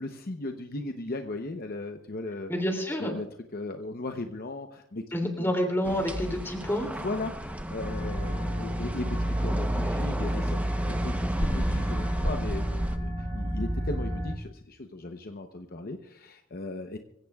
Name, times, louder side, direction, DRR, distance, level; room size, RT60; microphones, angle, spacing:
voice 1, 0.0-2.5 3.0-3.3 3.5-5.0 5.4-5.5 7.0-17.0, left 2 dB, 50° left, 5 dB, 0.8 m, -37 dB
voice 2, 2.5-3.1 5.1-6.9, equal, 10° left, 2 dB, 2.7 m, -28 dB
sound 1, 5.8-13.0, equal, 5° right, 0.8 m, -33 dB
sound 2, 7.8-14.4, equal, 35° right, 1.6 m, -30 dB
25.0 x 16.0 x 2.4 m, 0.75 s
head